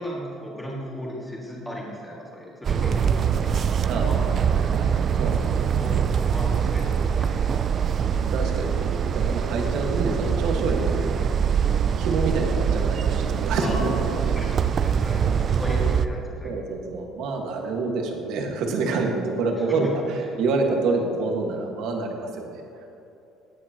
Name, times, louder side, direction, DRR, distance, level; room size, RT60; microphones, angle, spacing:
voice 1, 0.0-3.5 3.9-4.5 5.8-6.0 6.2-8.2 13.6-16.5 19.6-19.9, equal, 5° left, -5 dB, 2.1 m, -36 dB
sound 1, 2.6-16.1, right 7 dB, 35° right, 0.4 m, -23 dB
voice 2, 3.9-4.9 5.2-5.7 8.3-11.2 11.7-14.4 16.4-22.6, right 3 dB, 70° right, 2 dB, 1.6 m, -27 dB
15.5 x 9.8 x 3.0 m, 2.8 s
cardioid pair, 140°, 0 cm